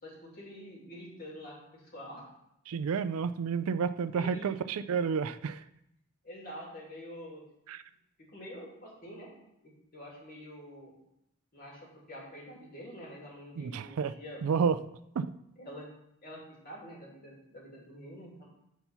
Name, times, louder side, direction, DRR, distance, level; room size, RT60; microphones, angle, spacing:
voice 1, 0.0-2.2 4.1-4.5 6.2-7.4 8.2-9.3 9.6-10.9 11.5-11.8 12.1-14.4 15.6-15.9 16.2-18.4, equal, 40° left, -3 dB, 2.4 m, -46 dB
voice 2, 2.7-5.6 7.7-7.8 13.6-14.1 14.4-14.8 15.2-15.3, right 6 dB, 75° right, 13 dB, 0.4 m, -30 dB
8.1 x 4.4 x 5.6 m, 0.80 s
head